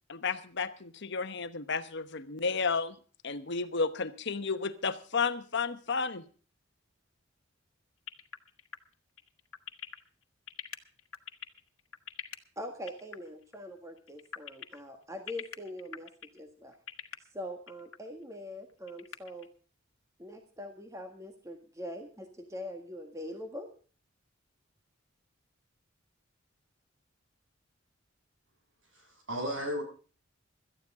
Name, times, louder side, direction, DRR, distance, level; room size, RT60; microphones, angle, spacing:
voice 1, 0.1-2.9 3.2-6.2, left 4 dB, 60° left, 10 dB, 1.0 m, -32 dB
sound 1, 8.1-12.4 12.9-13.2 13.4-13.6 14.0-14.8 15.3-16.4 16.7-17.1 17.7-18.0 18.3-18.4 18.7-19.5, left 8 dB, 85° left, 1.3 m, -42 dB
voice 2, 12.6-16.7 17.3-19.5 20.2-23.7, left 1 dB, 15° right, 5 dB, 1.6 m, -43 dB
voice 3, 28.9-29.8, equal, 65° right, 2 dB, 6.9 m, -34 dB
17.5 x 13.5 x 3.7 m, 0.39 s
head